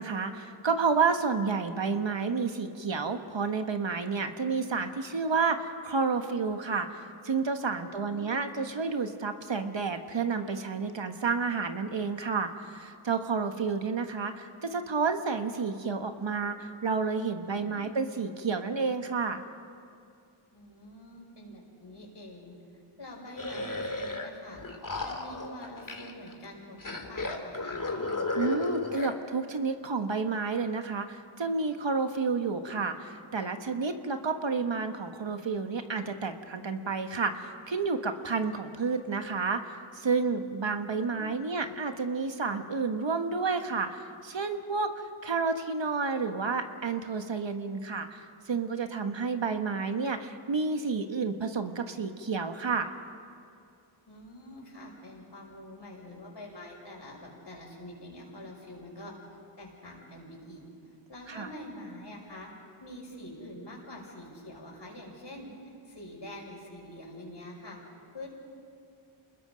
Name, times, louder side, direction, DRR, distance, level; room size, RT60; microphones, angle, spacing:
voice 1, 0.0-19.4 28.3-52.9 61.3-61.5, right 4 dB, 60° right, 7 dB, 1.4 m, -30 dB
voice 2, 7.9-8.8 17.4-17.9 20.5-24.6 25.0-27.8 41.1-41.7 54.1-59.1 59.6-60.7 61.1-62.5 62.8-67.8 68.1-68.3, left 1 dB, 60° left, -2 dB, 6.4 m, -46 dB
sound 1, 23.4-24.3 24.5-26.3 26.8-29.2, left 2 dB, 40° left, 2.4 m, -34 dB
27.5 x 20.5 x 5.2 m, 2.5 s
cardioid pair, 45°, 49 cm